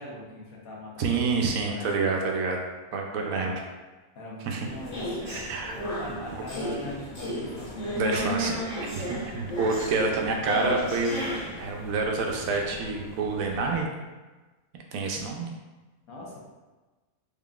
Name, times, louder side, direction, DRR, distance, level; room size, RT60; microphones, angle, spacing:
voice 1, 0.0-1.9 3.3-3.7 4.1-8.2 16.1-16.4, left 1 dB, 90° left, -4 dB, 1.4 m, -41 dB
voice 2, 1.0-2.6 2.9-3.5 4.4-4.7 5.2-5.7 6.3-6.4 8.0-8.5 8.9-11.3 11.6-13.9 14.9-15.5, right 3 dB, 80° right, 1 dB, 1.0 m, -28 dB
sound 1, 4.6-13.8, equal, 40° left, 1.1 m, -34 dB
3.6 x 3.4 x 2.4 m, 1.2 s
omnidirectional pair, 1.5 m